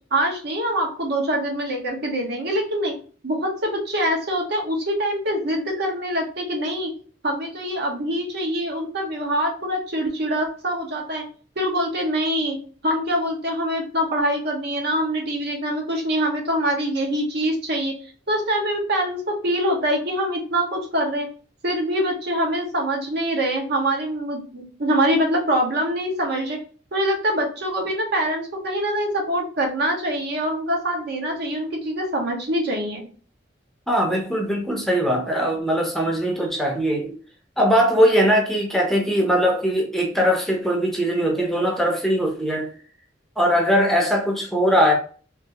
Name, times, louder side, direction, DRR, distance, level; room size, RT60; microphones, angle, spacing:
voice 1, 0.1-2.9 3.2-6.9 7.2-11.2 11.6-12.6 12.8-17.9 18.3-21.3 21.6-26.6 26.9-33.1, equal, 60° right, 1 dB, 1.0 m, -24 dB
voice 2, 33.9-37.2 37.6-42.7 43.4-44.9, equal, ahead, -1 dB, 0.6 m, -20 dB
3.5 x 2.6 x 2.8 m, 0.41 s
head